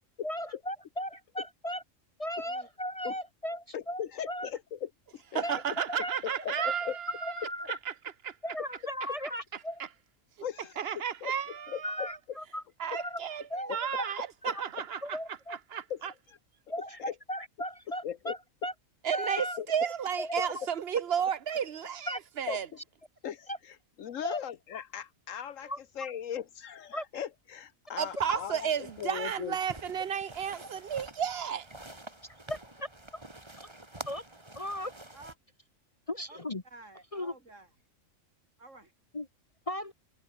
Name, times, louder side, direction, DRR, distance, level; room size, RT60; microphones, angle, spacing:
voice 1, 0.2-1.8 2.2-4.5 5.4-6.2 6.5-7.8 8.4-9.8 11.8-12.6 12.9-13.2 13.5-14.1 14.4-14.6 15.0-15.6 16.7-18.7 19.1-19.6 20.2-20.7 22.1-22.2 23.5-23.6 24.2-24.4 25.6-25.8 26.9-27.0 32.5-32.9 33.1-33.2 33.6-33.7 34.1-34.2 34.5-34.9 36.1-36.6 37.1-37.3 39.1-39.3 39.7-39.9, equal, 25° left, 1.3 m, -37 dB
voice 2, 3.7-5.4 6.2-7.0 10.4-10.7 11.2-11.3 11.7-12.1 13.7-13.8 15.9-16.0 16.3-16.4 17.1-17.2 18.0-18.3 19.6-19.7 22.5-22.6 23.2-29.6, left 9 dB, 75° left, 1.3 m, -38 dB
voice 3, 5.3-7.9 8.2-8.3 10.8-12.1 12.8-15.2 15.7-16.1 19.0-22.7 28.0-31.7, right 8 dB, 50° right, 1.2 m, -33 dB
voice 4, 11.5-11.8 35.1-35.3 36.3-36.4 36.6-37.7 38.6-38.9, right 2 dB, 70° right, 5.1 m, -51 dB
sound 1, 28.0-35.3, right 1 dB, 20° right, 2.7 m, -48 dB
omnidirectional pair, 1.4 m